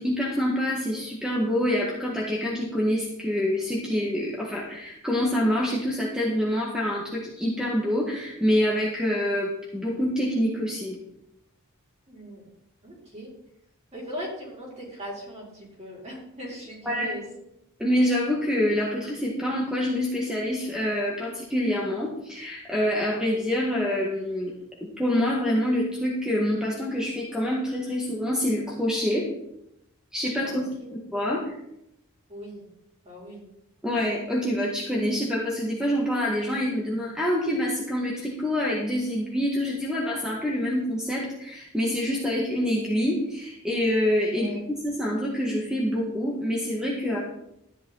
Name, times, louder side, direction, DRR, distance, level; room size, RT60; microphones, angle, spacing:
voice 1, 0.0-11.0 16.8-17.2 17.8-24.5 24.8-29.3 30.1-30.6 30.9-31.6 33.8-47.2, equal, 5° right, -4 dB, 1.8 m, -26 dB
voice 2, 12.1-12.5 12.8-13.3 13.9-17.2 30.4-31.0 32.3-32.7 33.0-33.5 44.3-44.6, equal, 30° right, -5 dB, 5.7 m, -39 dB
13.5 x 11.0 x 4.0 m, 0.81 s
head